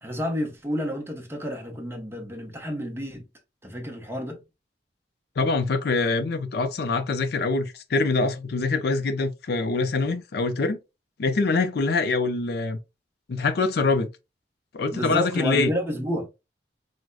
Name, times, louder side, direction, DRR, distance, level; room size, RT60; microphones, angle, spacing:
voice 1, 0.0-3.2 3.6-4.4 14.9-16.3, equal, 15° right, 0.7 m, -30 dB
voice 2, 5.4-10.8 11.2-12.8 13.3-14.1 14.7-15.7, left 3 dB, 60° left, 0.5 m, -24 dB
4.7 x 2.1 x 2.4 m
head